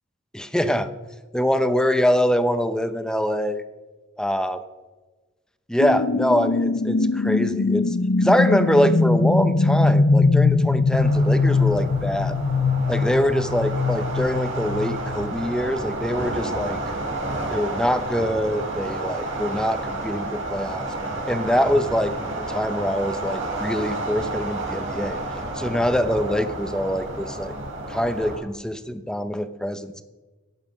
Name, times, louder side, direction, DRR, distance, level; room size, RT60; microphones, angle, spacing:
voice 1, 0.3-0.9 1.3-3.6 4.2-4.6 5.7-12.4 12.9-16.8 17.5-20.9 21.3-25.2 25.6-27.5 27.9-30.0, equal, 5° left, 10 dB, 0.8 m, -24 dB
sound 1, 5.8-16.1, left 3 dB, 60° left, 0.6 m, -21 dB
sound 2, 10.9-28.4, right 2 dB, 80° right, 4.3 m, -31 dB
17.0 x 9.0 x 6.1 m, 1.2 s
head